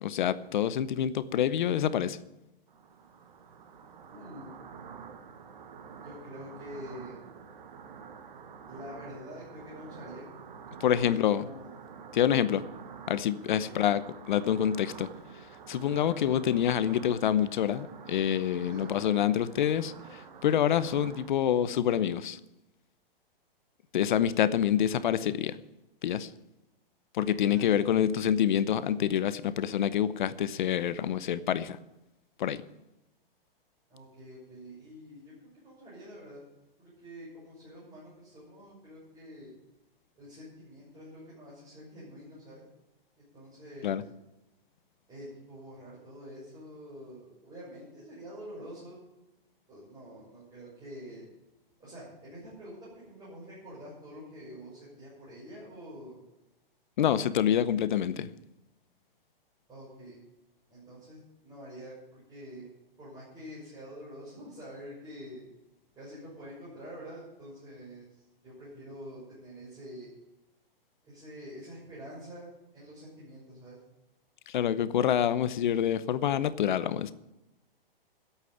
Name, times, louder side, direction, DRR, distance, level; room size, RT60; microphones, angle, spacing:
voice 1, 0.0-2.2 10.8-11.4 12.1-12.6 13.1-14.0 14.3-15.1 15.7-19.9 20.4-22.4 23.9-25.5 26.0-26.3 27.2-31.8 32.4-32.6 43.8-44.0 57.0-58.3 74.5-77.1, left 10 dB, 55° left, 15 dB, 0.9 m, -27 dB
sound 1, 2.7-21.3, right 6 dB, 55° right, 1.7 m, -48 dB
voice 2, 4.1-4.5 5.9-7.2 8.6-10.3 10.8-11.7 13.5-13.8 18.6-18.9 27.4-28.2 33.9-36.4 36.8-39.5 40.2-42.6 43.2-44.0 45.1-49.0 49.7-51.3 51.8-56.2 59.7-60.2 60.7-62.7 63.0-65.4 65.9-70.1 71.0-73.8, equal, 15° right, -8 dB, 6.4 m, -46 dB
12.0 x 8.4 x 9.3 m, 0.96 s
hypercardioid pair, 160°, 29 cm